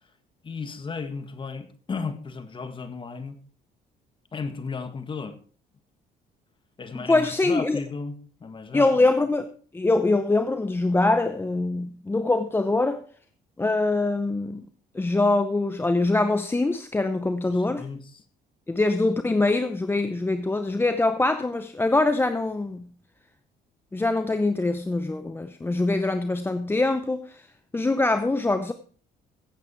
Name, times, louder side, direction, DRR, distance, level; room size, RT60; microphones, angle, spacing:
voice 1, 0.4-3.4 4.3-5.4 6.8-8.9 17.5-18.2, left 4 dB, 30° left, 1.8 m, -34 dB
voice 2, 7.0-7.8 8.7-9.5 9.7-13.0 13.6-14.6 14.9-17.8 18.7-22.9 23.9-27.5 27.7-28.7, left 2 dB, 15° left, 0.8 m, -23 dB
15.0 x 8.4 x 4.6 m
cardioid pair, 110°, 17 cm